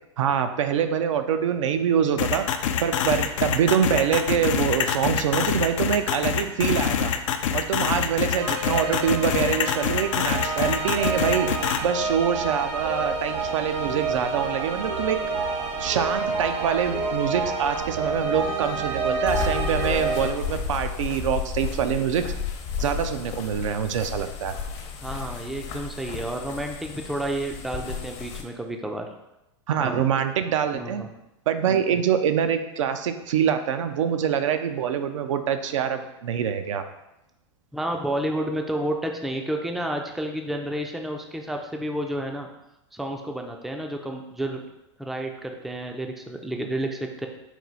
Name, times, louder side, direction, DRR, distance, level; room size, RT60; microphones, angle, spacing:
voice 1, 0.2-2.4 2.8-7.1 7.5-11.5 11.8-15.2 15.8-22.3 22.8-24.5 29.7-31.0 31.5-36.8, right 8 dB, 80° right, 8 dB, 0.4 m, -25 dB
sound 1, 2.2-11.8, left 8 dB, 80° left, 0.4 m, -25 dB
sound 2, 8.4-20.3, right 3 dB, 65° right, 1.0 m, -28 dB
sound 3, 19.3-28.4, left 6 dB, 40° left, 0.7 m, -33 dB
voice 2, 25.0-29.1 29.8-30.0 30.7-31.1 37.7-42.5 42.9-44.6 45.0-47.3, right 1 dB, ahead, 3 dB, 0.3 m, -30 dB
4.4 x 2.3 x 3.9 m, 0.91 s
hypercardioid pair, 120°, 16 cm